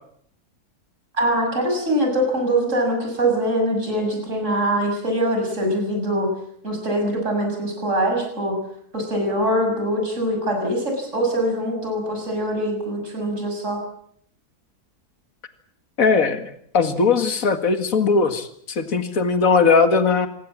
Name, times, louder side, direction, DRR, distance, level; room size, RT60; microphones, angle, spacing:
voice 1, 1.1-6.3 6.6-8.6 8.9-13.8, right 1 dB, 50° right, 2 dB, 7.0 m, -23 dB
voice 2, 16.0-20.3, left 4 dB, 60° left, 8 dB, 2.4 m, -19 dB
26.5 x 23.5 x 7.4 m, 0.66 s
omnidirectional pair, 1.6 m